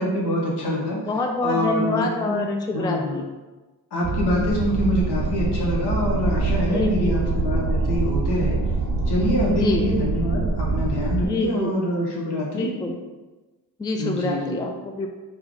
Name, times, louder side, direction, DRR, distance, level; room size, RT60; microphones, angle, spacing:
voice 1, 0.0-1.0 1.4-2.5 2.7-3.2 3.9-8.6 9.1-12.7 14.0-14.6, left 1 dB, 75° left, -3 dB, 1.0 m, -25 dB
voice 2, 1.0-3.2 6.7-7.2 9.5-9.9 11.2-11.8 12.5-13.0 13.8-15.1, left 2 dB, 10° left, 2 dB, 0.3 m, -26 dB
sound 1, 4.0-11.3, right 3 dB, 50° right, 0.6 m, -24 dB
3.2 x 2.3 x 3.8 m, 1.2 s
cardioid pair, 45°, 41 cm